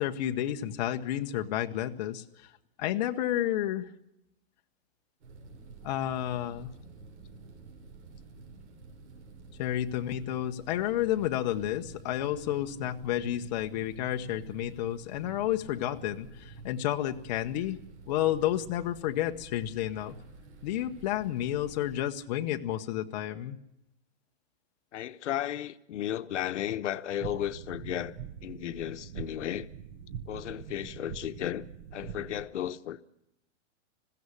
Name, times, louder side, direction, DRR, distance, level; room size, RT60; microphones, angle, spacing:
voice 1, 0.0-2.2 2.8-3.9 5.8-6.7 9.6-17.8 18.1-20.1 20.6-23.6, left 12 dB, 35° left, 1.0 m, -31 dB
sound 1, 5.2-22.0, right 3 dB, 80° right, 6.5 m, -49 dB
voice 2, 24.9-28.2 28.4-29.7 30.3-31.6 31.9-33.0, left 11 dB, 85° left, 1.0 m, -34 dB
sound 2, 27.2-32.4, right 8 dB, 40° right, 1.0 m, -43 dB
20.5 x 16.0 x 9.8 m
supercardioid pair, 170°, 35 cm